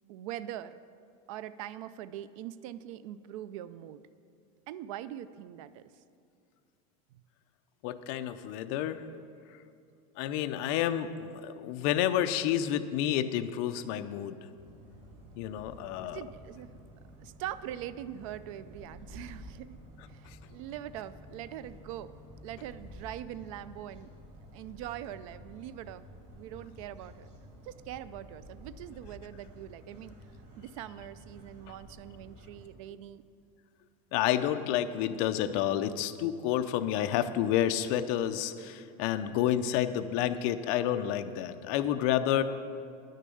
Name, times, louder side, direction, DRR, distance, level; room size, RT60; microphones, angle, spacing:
voice 1, 0.1-0.8 1.3-4.0 4.7-5.8 16.1-16.7 17.2-19.8 20.1-22.1 22.4-24.1 24.5-27.3 27.6-30.1 30.6-33.2, right 12 dB, 70° right, 15 dB, 0.4 m, -42 dB
voice 2, 7.8-9.0 10.2-14.4 15.4-16.2 34.1-42.4, left 11 dB, 50° left, 9 dB, 0.6 m, -29 dB
sound 1, 14.6-32.6, equal, 40° right, 2.1 m, -51 dB
10.0 x 6.6 x 7.7 m, 2.4 s
supercardioid pair, 165°, 18 cm